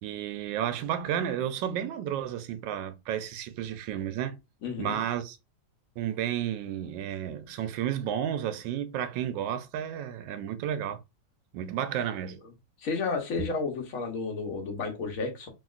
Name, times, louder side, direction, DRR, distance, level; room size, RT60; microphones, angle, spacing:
voice 1, 0.0-4.4 4.8-5.4 6.0-11.0 11.5-12.4, right 10 dB, 85° right, 1.3 m, -32 dB
voice 2, 4.6-5.0 12.8-15.5, left 4 dB, 55° left, 1.2 m, -32 dB
2.9 x 2.8 x 2.3 m
omnidirectional pair, 1.9 m